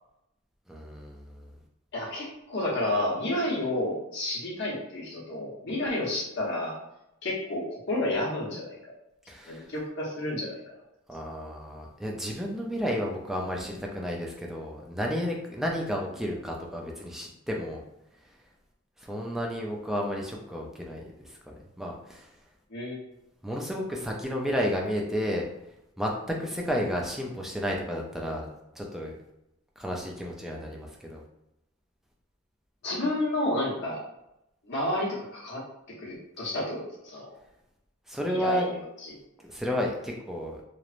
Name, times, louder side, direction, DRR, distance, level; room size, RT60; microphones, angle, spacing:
voice 1, 0.7-1.5 9.3-9.7 11.1-17.8 19.1-21.0 21.8-22.3 23.4-25.4 26.0-28.5 28.8-29.2 29.8-31.2 38.1-38.6 39.4-40.6, equal, ahead, -1 dB, 0.3 m, -32 dB
voice 2, 1.9-6.8 7.2-8.8 9.5-10.7 22.7-23.0 32.8-34.0 34.6-35.6 36.0-37.3 38.2-39.2, left 1 dB, 55° left, -5 dB, 0.8 m, -31 dB
3.0 x 2.0 x 2.4 m, 0.87 s
head